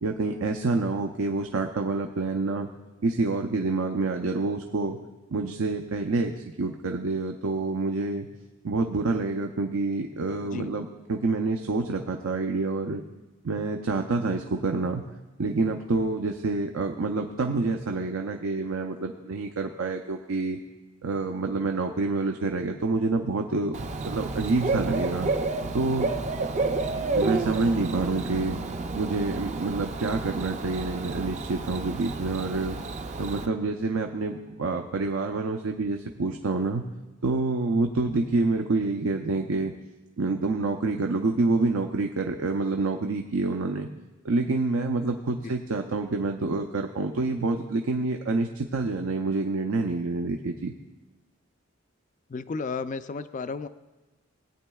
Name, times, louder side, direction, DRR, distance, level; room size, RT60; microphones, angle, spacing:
voice 1, 0.0-2.7 3.0-5.0 5.3-8.3 8.6-13.0 13.4-15.0 15.4-20.6 21.0-25.3 25.7-26.1 27.2-28.6 28.9-32.8 33.2-36.8 37.2-39.7 40.2-43.9 44.2-50.7, right 3 dB, 85° right, 4 dB, 0.6 m, -27 dB
Bird / Cricket, 23.7-33.5, right 3 dB, 35° right, 0.4 m, -30 dB
voice 2, 52.3-53.7, left 4 dB, 40° left, 12 dB, 0.4 m, -33 dB
18.5 x 9.0 x 2.3 m, 1.2 s
head